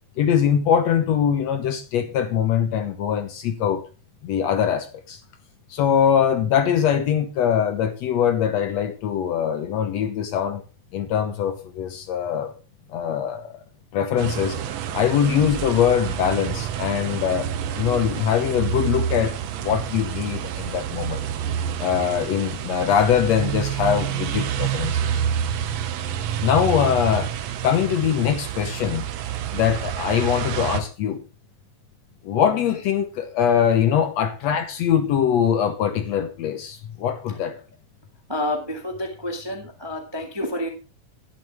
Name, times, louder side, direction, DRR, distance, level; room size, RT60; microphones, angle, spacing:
voice 1, 0.2-3.8 4.2-5.2 5.7-10.6 10.9-12.5 12.9-13.6 13.9-14.6 14.9-17.5 17.8-19.4 19.6-21.3 21.8-25.2 26.4-27.3 27.6-29.1 29.5-31.2 32.2-37.6, left 8 dB, 70° left, 1.8 m, -22 dB
sound 1, 14.2-30.8, right 9 dB, 70° right, 1.8 m, -28 dB
voice 2, 38.3-40.7, left 1 dB, 15° right, 0.9 m, -29 dB
11.0 x 11.0 x 3.5 m
omnidirectional pair, 3.6 m